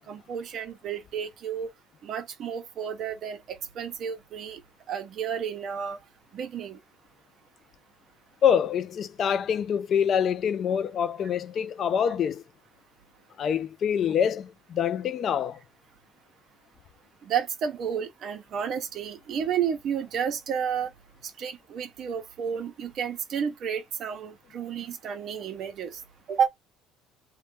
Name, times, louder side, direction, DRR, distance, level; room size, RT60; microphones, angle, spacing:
voice 1, 0.1-1.7 2.0-4.6 4.9-6.0 6.3-6.8 17.2-20.9 21.2-26.0 26.3-26.5, right 7 dB, 50° right, 0.7 m, -31 dB
voice 2, 8.4-12.4 13.4-15.6, left 8 dB, 45° left, 0.3 m, -25 dB
3.0 x 2.2 x 3.0 m
cardioid pair, 125°, 0 cm